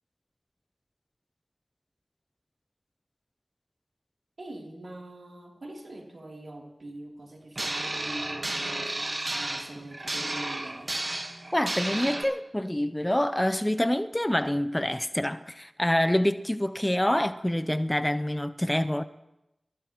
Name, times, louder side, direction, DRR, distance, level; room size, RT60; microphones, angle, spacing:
voice 1, 4.4-10.9, right 1 dB, 70° right, 3.2 m, -43 dB
sound 1, 7.6-12.2, right 2 dB, 45° right, 1.4 m, -32 dB
voice 2, 11.5-19.0, left 1 dB, 15° left, 0.6 m, -26 dB
26.0 x 14.5 x 3.0 m
cardioid pair, 45°, 0 cm